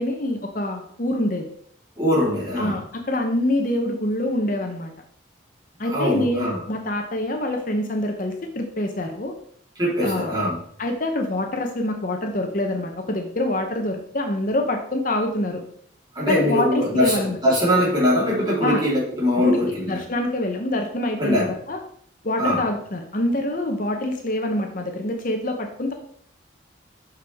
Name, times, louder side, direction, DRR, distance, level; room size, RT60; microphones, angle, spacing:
voice 1, 0.0-1.4 2.6-4.9 5.8-9.3 10.0-10.3 10.8-15.6 16.3-17.4 18.6-18.8 19.4-19.6 19.9-21.8 22.2-25.9, left 1 dB, 45° left, 4 dB, 0.8 m, -25 dB
voice 2, 2.0-2.8 5.8-6.6 9.8-10.6 16.1-20.0 21.2-21.5 22.4-22.6, left 1 dB, 20° right, -6 dB, 3.6 m, -22 dB
8.1 x 6.3 x 3.5 m, 0.64 s
head